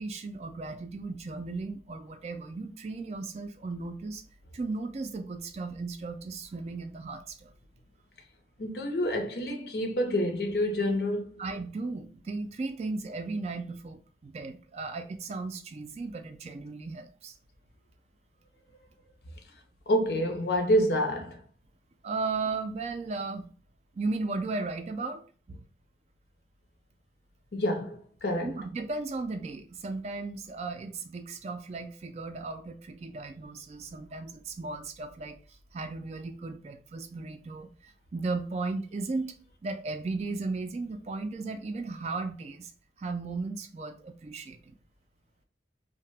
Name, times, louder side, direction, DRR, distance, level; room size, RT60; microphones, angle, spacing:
voice 1, 0.0-4.2 4.5-7.5 11.4-17.4 22.0-23.5 23.9-25.2 25.5-25.7 28.4-35.4 35.7-39.3 39.6-42.7 43.0-44.7, right 3 dB, 35° right, 0.3 m, -36 dB
voice 2, 8.6-11.4 19.9-21.4 27.5-28.6, equal, 65° left, 0.6 m, -28 dB
2.8 x 2.1 x 3.2 m
head